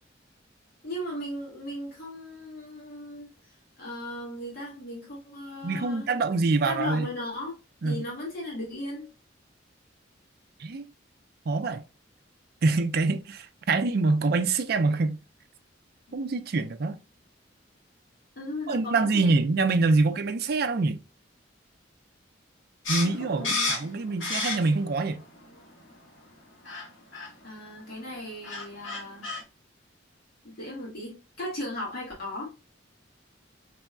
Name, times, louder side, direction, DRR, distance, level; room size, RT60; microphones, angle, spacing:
voice 1, 0.8-3.3 3.8-6.1 6.6-7.5 7.8-9.1 18.4-19.4 23.4-23.7 27.4-29.3 30.4-32.5, left 1 dB, 50° left, 2.0 m, -37 dB
voice 2, 5.6-7.1 7.8-8.0 10.6-10.9 11.5-11.8 12.6-15.2 16.1-17.0 18.7-21.0 22.9-25.2, right 3 dB, 55° right, 0.4 m, -25 dB
sound 1, 22.9-24.9 25.3-26.0 26.7-26.9 27.1-27.3 28.1-28.2 28.4-29.4, left 3 dB, 85° left, 1.6 m, -31 dB
4.2 x 3.4 x 2.3 m
head